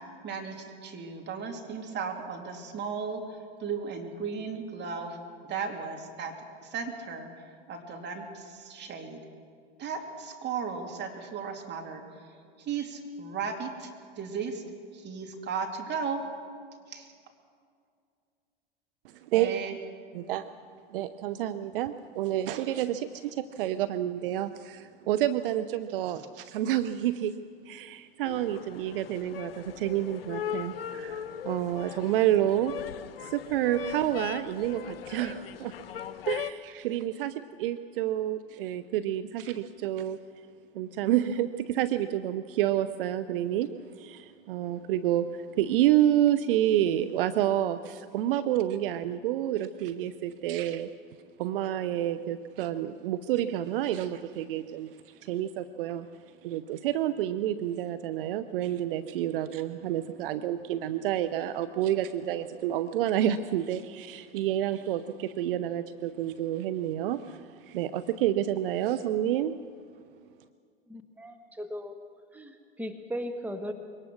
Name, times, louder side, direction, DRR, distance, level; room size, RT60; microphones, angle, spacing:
voice 1, 0.2-5.2 5.4-9.2 9.8-12.0 12.6-14.6 14.9-16.2 16.9-17.1 19.3-19.8, right 5 dB, 35° right, 3 dB, 3.1 m, -36 dB
voice 2, 20.1-20.5 20.9-27.4 27.7-32.8 33.2-35.7 36.3-40.2 40.7-50.9 51.4-56.1 56.4-69.6, right 12 dB, 65° right, 11 dB, 0.7 m, -29 dB
sound 1, 28.2-36.5, left 10 dB, 75° left, 0.8 m, -39 dB
voice 3, 70.9-72.0 72.3-73.7, equal, 5° right, 5 dB, 1.4 m, -37 dB
22.5 x 18.5 x 6.4 m, 2.2 s
hypercardioid pair, 90°, 29 cm